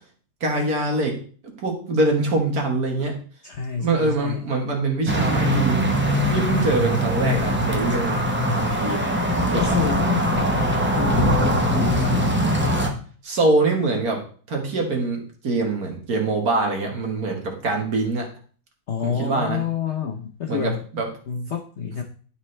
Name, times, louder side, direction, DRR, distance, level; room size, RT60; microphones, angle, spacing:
voice 1, 0.4-1.2 1.6-3.1 3.8-5.8 6.3-8.2 8.5-9.0 9.5-9.8 13.2-14.2 14.5-15.2 15.4-18.3 19.0-19.6 20.5-21.1, right 2 dB, 50° right, 2 dB, 1.9 m, -23 dB
voice 2, 3.4-4.4 9.5-12.4 18.9-20.9 21.3-22.0, left 7 dB, 70° left, 3 dB, 0.6 m, -28 dB
sound 1, 5.1-12.9, equal, 15° right, 0.4 m, -21 dB
11.5 x 4.3 x 3.2 m, 0.43 s
omnidirectional pair, 2.1 m